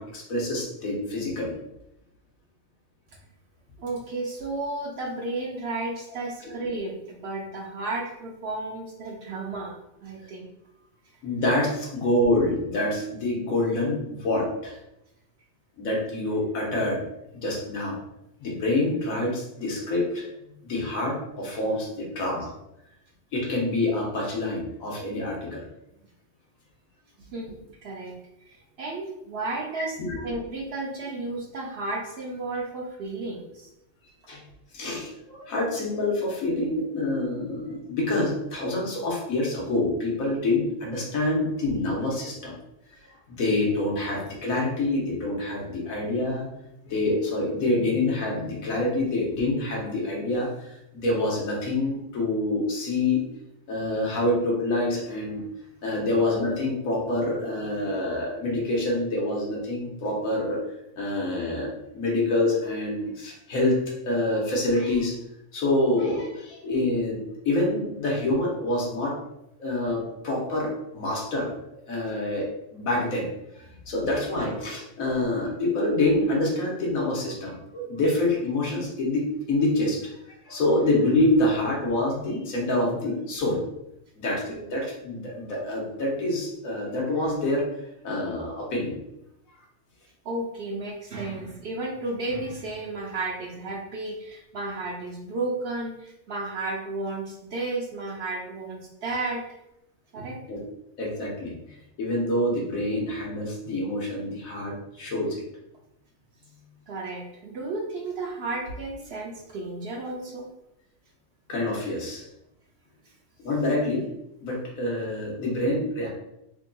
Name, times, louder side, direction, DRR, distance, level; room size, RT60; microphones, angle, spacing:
voice 1, 0.0-1.6 11.2-14.8 15.8-17.0 17.4-18.0 18.4-20.3 20.6-22.5 23.3-25.6 29.7-30.3 34.3-34.4 34.7-42.5 43.3-46.5 46.8-53.2 53.7-55.5 55.8-60.6 61.0-65.2 65.5-67.2 67.4-69.1 69.6-71.5 71.9-72.5 72.7-73.3 73.5-80.1 80.4-83.6 84.2-87.6 88.0-89.0 100.5-100.6 101.0-101.5 102.0-105.4 111.5-112.2 113.4-114.1 114.4-116.1, left 2 dB, 85° left, -2 dB, 1.4 m, -26 dB
voice 2, 3.8-10.5 27.2-27.6 27.8-28.2 28.8-29.9 30.2-33.7 84.6-84.7 90.2-99.4 100.1-100.4 106.9-110.5, right 2 dB, 60° right, 0 dB, 0.7 m, -33 dB
3.8 x 3.5 x 2.3 m, 0.84 s
omnidirectional pair, 1.4 m